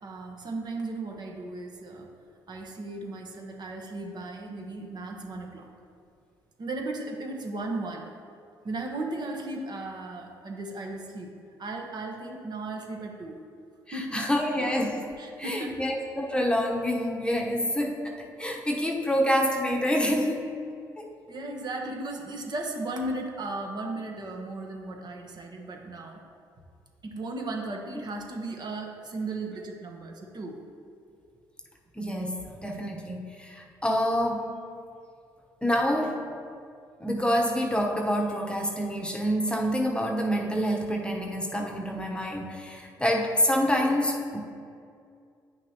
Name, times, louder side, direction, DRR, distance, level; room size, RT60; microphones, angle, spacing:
voice 1, 0.0-2.1 2.5-5.7 6.6-8.1 8.6-11.3 11.6-13.4 13.9-14.2 14.6-14.7 15.2-15.8 21.3-26.2 27.0-30.6, right 2 dB, 50° right, 1 dB, 1.2 m, -36 dB
voice 2, 13.9-15.0 15.4-20.5 21.0-21.1 32.0-34.5 35.6-36.2 37.0-44.4, equal, 10° left, 1 dB, 1.0 m, -27 dB
9.3 x 5.9 x 3.0 m, 2.4 s
hypercardioid pair, 50°, 9 cm